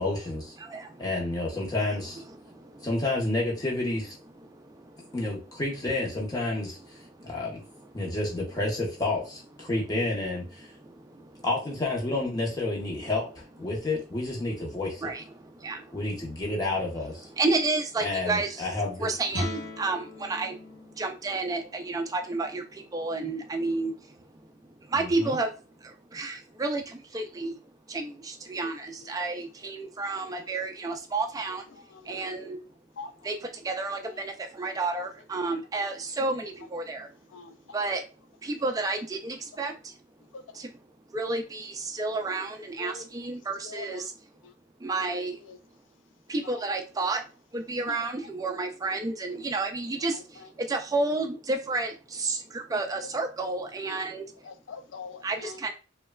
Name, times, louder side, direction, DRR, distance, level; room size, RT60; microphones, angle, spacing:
voice 1, 0.0-0.5 1.0-2.2 2.8-4.1 5.1-6.8 7.2-7.6 7.9-10.7 11.4-15.1 15.9-17.3 18.0-19.1 24.9-25.4, left 2 dB, 20° left, 0.8 m, -30 dB
voice 2, 0.6-1.1 2.3-2.9 4.4-5.2 7.0-7.6 7.9-8.1 10.6-11.4 13.0-13.1 15.0-16.0 17.3-18.7 19.0-31.7 32.0-32.6 33.2-37.2 37.7-38.0 38.4-40.0 40.5-40.7 41.1-44.1 44.8-45.4 46.3-47.2 47.5-54.3 55.2-55.7, right 3 dB, 20° right, 0.3 m, -31 dB
Guitar, 19.3-24.9, left 1 dB, 90° left, 1.0 m, -41 dB
voice 3, 31.7-32.4 33.0-33.1 34.0-34.2 37.3-37.8 39.5-39.6 40.3-40.6 42.8-43.1 43.6-44.1 44.4-44.5 45.4-45.6 46.4-46.7 49.3-49.4 50.1-50.5 54.4-55.6, left 5 dB, 70° left, 0.4 m, -45 dB
3.0 x 2.2 x 2.2 m
head